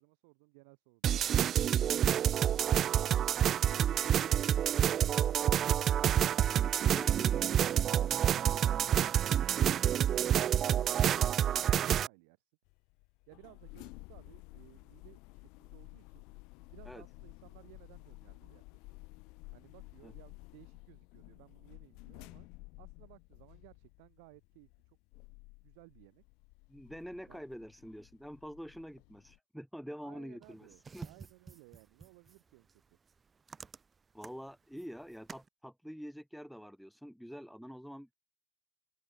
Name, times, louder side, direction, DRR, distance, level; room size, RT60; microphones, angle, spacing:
voice 1, 0.0-1.3 13.3-16.3 16.7-19.0 19.5-22.5 22.8-25.0 25.6-26.2 27.3-27.4 30.0-32.8, right 30 dB, 70° right, 3.7 m, -60 dB
sound 1, 1.0-12.1, right 10 dB, 35° right, 0.4 m, -28 dB
voice 2, 6.9-7.6 16.9-17.0 20.0-20.1 26.7-31.1 34.1-38.1, equal, ahead, 1.3 m, -46 dB
sound 2, 12.7-29.4, left 27 dB, 65° left, 2.2 m, -54 dB
sound 3, 30.4-35.5, right 5 dB, 20° right, 1.5 m, -52 dB
open air
supercardioid pair, 130°, 0 cm